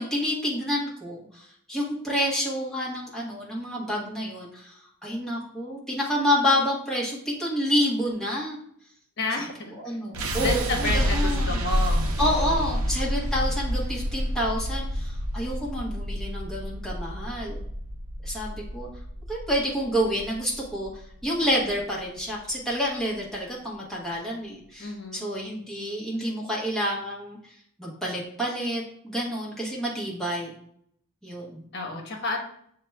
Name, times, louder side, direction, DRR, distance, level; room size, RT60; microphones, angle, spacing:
voice 1, 0.0-8.6 9.4-9.5 9.8-11.6 12.2-17.6 18.2-18.9 19.3-20.9 21.2-27.4 27.8-30.5 31.2-31.6, equal, ahead, -6 dB, 1.1 m, -28 dB
voice 2, 9.2-10.0 10.4-12.7 24.8-25.3 31.7-32.4, left 2 dB, 50° left, 0 dB, 1.0 m, -31 dB
sound 1, 10.1-22.2, equal, 75° right, 0.6 m, -29 dB
6.7 x 2.3 x 3.3 m, 0.66 s
head